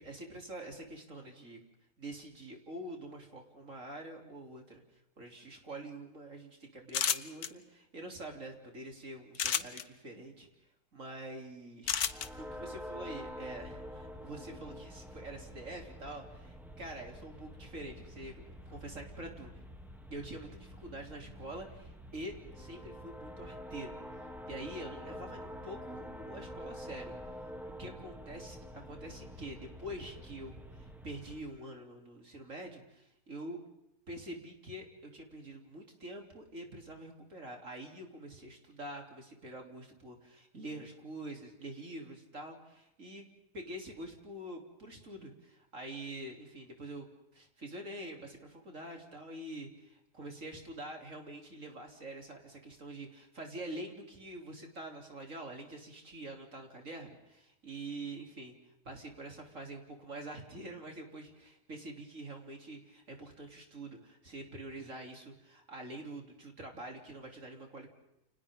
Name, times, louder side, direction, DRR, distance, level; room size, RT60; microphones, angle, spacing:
voice 1, 0.0-1.6 2.0-4.8 5.2-10.5 10.9-12.0 12.3-19.6 20.1-23.9 24.5-27.5 27.8-33.6 34.1-58.5 58.8-67.9, right 1 dB, 50° right, 2 dB, 3.7 m, -46 dB
sound 1, 6.9-7.5 9.3-9.8 11.9-12.3, left 9 dB, 70° left, 1.5 m, -30 dB
sound 2, 11.8-31.4, equal, ahead, 2.6 m, -47 dB
30.0 x 29.5 x 3.7 m, 0.85 s
omnidirectional pair, 1.8 m